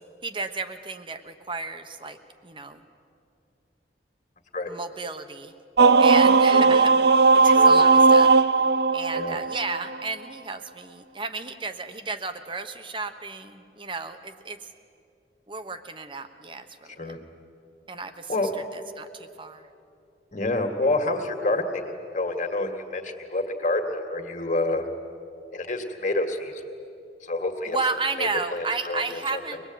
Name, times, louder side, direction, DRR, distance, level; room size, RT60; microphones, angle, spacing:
voice 1, 0.2-2.2 2.4-2.8 4.7-5.5 6.0-7.1 7.3-8.3 8.9-14.6 15.5-17.2 17.9-18.3 19.0-19.7 27.7-29.6, right 3 dB, 30° right, 8 dB, 1.1 m, -32 dB
sound 1, 5.8-10.0, right 4 dB, 65° right, 0.5 m, -17 dB
voice 2, 7.4-7.8 9.1-9.4 17.0-17.2 18.3-18.5 20.3-24.8 25.5-26.6 27.2-27.8 28.2-29.6, left 2 dB, 45° left, 5 dB, 2.2 m, -28 dB
24.5 x 20.0 x 9.2 m, 2.5 s
head